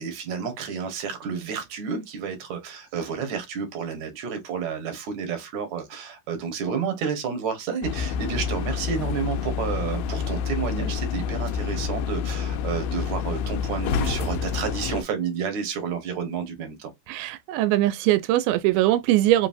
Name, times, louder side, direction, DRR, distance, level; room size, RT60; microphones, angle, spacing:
voice 1, 0.0-16.9, right 6 dB, 65° right, 2.1 m, -30 dB
sound 1, 7.8-15.0, left 6 dB, 85° left, 2.5 m, -28 dB
voice 2, 17.1-19.5, right 15 dB, 90° right, 2.4 m, -21 dB
5.5 x 2.9 x 2.6 m
omnidirectional pair, 4.3 m